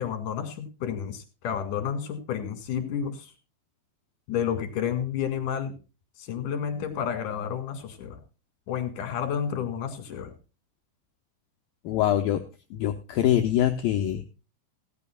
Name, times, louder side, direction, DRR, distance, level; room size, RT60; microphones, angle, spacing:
voice 1, 0.0-3.3 4.3-5.7 6.2-8.2 8.7-10.3, left 8 dB, 55° left, 8 dB, 3.1 m, -31 dB
voice 2, 11.8-12.4 12.7-14.2, left 11 dB, 85° left, 6 dB, 2.0 m, -24 dB
17.5 x 14.0 x 2.3 m, 0.32 s
omnidirectional pair, 5.3 m